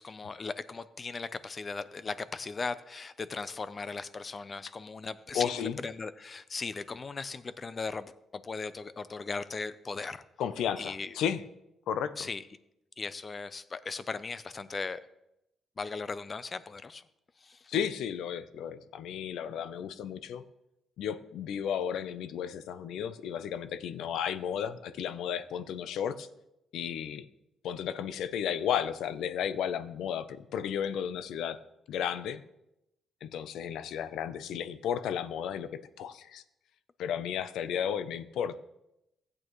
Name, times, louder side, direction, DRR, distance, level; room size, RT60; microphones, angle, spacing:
voice 1, 0.0-10.2 10.8-11.1 12.2-12.4 13.0-15.0 15.8-17.0 17.4-17.7, left 4 dB, 35° left, 14 dB, 0.6 m, -38 dB
voice 2, 5.3-5.8 10.4-11.4 11.9-12.3 17.7-20.4 21.0-26.3 26.7-27.2 27.6-31.6 31.9-32.4 33.2-36.4 37.0-38.6, left 8 dB, 80° left, 12 dB, 0.6 m, -33 dB
15.0 x 8.6 x 3.1 m, 0.86 s
cardioid pair, 90°, 0 cm